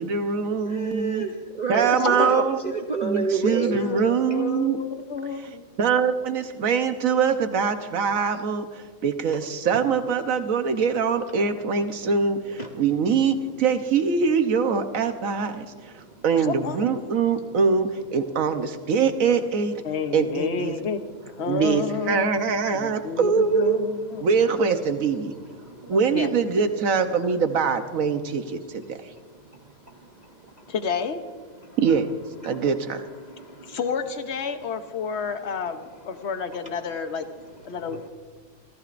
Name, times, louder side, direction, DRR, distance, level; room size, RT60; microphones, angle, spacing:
voice 1, 0.0-1.3 1.7-2.6 3.0-4.8 5.8-19.8 20.1-20.7 21.5-23.8 24.2-25.3 25.9-29.0 31.8-32.1 32.4-33.0, right 5 dB, 70° right, 8 dB, 1.3 m, -23 dB
voice 2, 0.6-3.8 8.3-8.4 12.6-12.7 22.6-23.1 25.6-25.9 29.9-30.3 31.6-31.8 32.4-32.7 33.2-33.8 37.9-38.0, right 4 dB, 35° right, 2 dB, 0.8 m, -30 dB
voice 3, 2.0-2.5 3.7-5.6 16.4-17.0 19.8-21.1 21.4-24.3 25.8-26.3 30.7-31.2 33.7-37.3 37.6-38.1, left 5 dB, 55° left, 8 dB, 1.1 m, -30 dB
28.5 x 15.0 x 2.6 m, 1.5 s
omnidirectional pair, 1.5 m